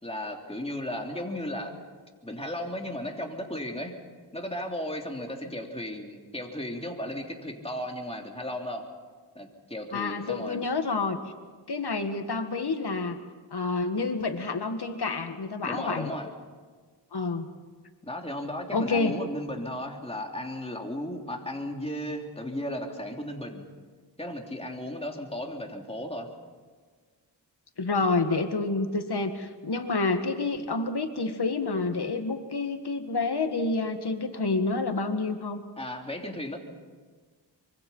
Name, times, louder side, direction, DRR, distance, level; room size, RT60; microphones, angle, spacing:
voice 1, 0.0-1.8 2.2-4.0 4.3-8.9 9.3-10.7 15.6-16.3 18.0-23.7 24.2-26.3 35.8-36.6, left 1 dB, 15° left, 1 dB, 3.0 m, -35 dB
voice 2, 9.9-11.2 11.7-13.2 13.5-16.1 17.1-17.5 18.7-19.2 27.8-35.6, left 3 dB, 70° left, 7 dB, 2.0 m, -28 dB
25.0 x 24.5 x 5.7 m, 1.5 s
wide cardioid pair, 60°, 41 cm